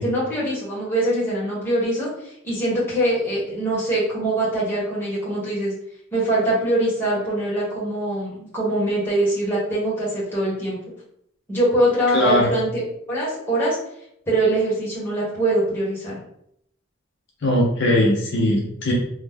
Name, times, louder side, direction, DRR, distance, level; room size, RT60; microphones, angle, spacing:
voice 1, 0.0-5.7 6.1-10.8 11.5-12.8 13.1-13.8 14.3-16.2, right 1 dB, 10° left, -8 dB, 1.3 m, -23 dB
voice 2, 12.1-12.5 17.4-18.9, left 1 dB, 60° left, -2 dB, 0.6 m, -19 dB
3.1 x 2.1 x 3.5 m, 0.74 s
head